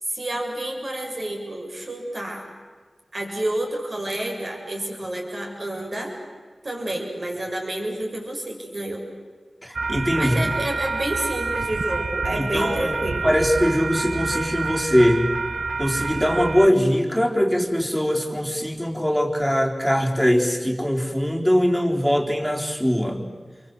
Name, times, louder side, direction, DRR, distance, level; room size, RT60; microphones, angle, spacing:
voice 1, 0.1-2.5 3.1-6.1 6.6-9.0 10.2-13.4, right 1 dB, 55° right, 0 dB, 6.9 m, -29 dB
voice 2, 9.6-10.4 12.4-12.9 13.2-15.3 15.8-23.2, equal, 5° right, 1 dB, 4.2 m, -21 dB
sound 1, 9.7-16.7, right 3 dB, 80° right, 0.8 m, -28 dB
29.0 x 23.5 x 8.0 m, 1.5 s
cardioid pair, 50°, 0 cm